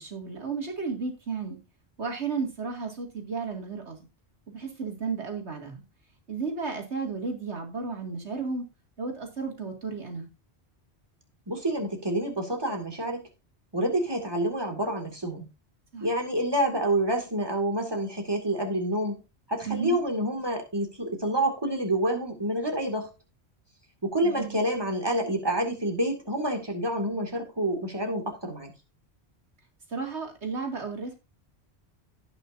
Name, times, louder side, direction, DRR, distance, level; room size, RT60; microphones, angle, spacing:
voice 1, 0.0-1.6 2.0-4.0 4.5-5.8 6.3-8.7 9.0-10.3 15.9-16.1 19.6-20.0 24.2-24.6 29.9-31.2, right 4 dB, 90° right, 2 dB, 2.8 m, -33 dB
voice 2, 11.5-13.3 13.7-15.5 16.0-19.2 19.5-23.1 24.0-28.7, right 1 dB, 20° right, 2 dB, 2.3 m, -28 dB
18.0 x 6.0 x 2.7 m, 0.27 s
omnidirectional pair, 1.1 m